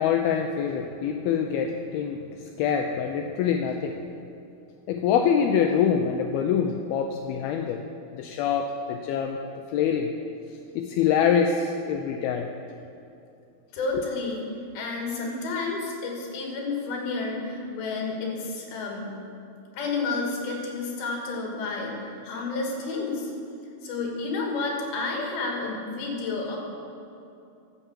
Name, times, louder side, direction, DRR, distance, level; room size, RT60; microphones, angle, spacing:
voice 1, 0.0-2.2 2.6-4.0 4.9-7.8 8.1-9.4 9.7-10.1 10.8-12.5, left 7 dB, 80° left, 4 dB, 2.3 m, -25 dB
voice 2, 13.7-14.5 14.7-19.1 19.7-23.3 23.8-26.6, left 3 dB, 65° left, -1 dB, 3.9 m, -30 dB
13.5 x 7.1 x 7.4 m, 2.7 s
omnidirectional pair, 4.8 m